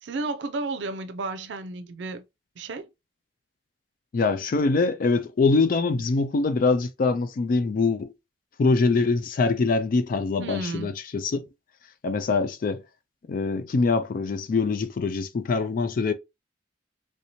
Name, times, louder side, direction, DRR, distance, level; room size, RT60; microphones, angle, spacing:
voice 1, 0.0-2.2 2.6-2.9 10.4-10.9, right 3 dB, 85° right, 0.4 m, -32 dB
voice 2, 4.1-8.1 8.6-11.4 12.0-12.8 13.3-16.1, left 4 dB, 50° left, 0.4 m, -24 dB
3.3 x 2.7 x 2.9 m
head